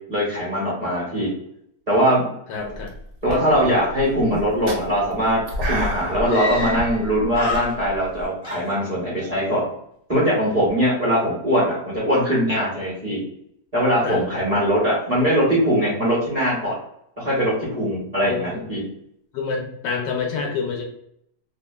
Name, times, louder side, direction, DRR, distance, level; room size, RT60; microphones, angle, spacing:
voice 1, 0.1-1.3 1.9-2.3 3.2-5.4 5.7-9.7 10.1-13.2 13.7-16.8 17.2-18.8, equal, 30° right, -7 dB, 0.8 m, -21 dB
voice 2, 2.5-2.9 14.0-14.4 18.2-18.6 19.3-20.8, left 5 dB, 75° left, 1 dB, 1.1 m, -28 dB
sound 1, 2.7-3.0 3.3-8.3, equal, 60° right, 1.0 m, -30 dB
Screaming, 5.5-5.6 6.2-7.0 7.3-8.1 8.4-9.3, left 2 dB, 50° left, 0.6 m, -31 dB
2.8 x 2.3 x 2.2 m, 0.74 s
omnidirectional pair, 1.8 m